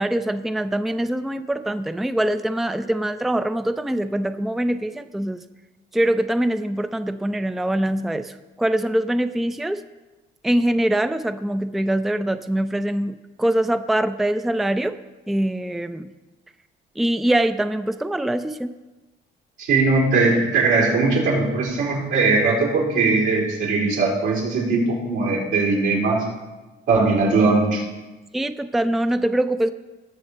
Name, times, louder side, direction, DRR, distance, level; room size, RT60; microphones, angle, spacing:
voice 1, 0.0-5.4 5.9-9.8 10.4-15.0 15.3-16.1 17.0-18.7 28.3-29.7, right 1 dB, ahead, 10 dB, 0.4 m, -23 dB
voice 2, 19.6-26.2 26.9-27.8, right 3 dB, 90° right, -5 dB, 4.3 m, -20 dB
19.0 x 6.7 x 4.3 m, 1.1 s
cardioid pair, 90°, 20 cm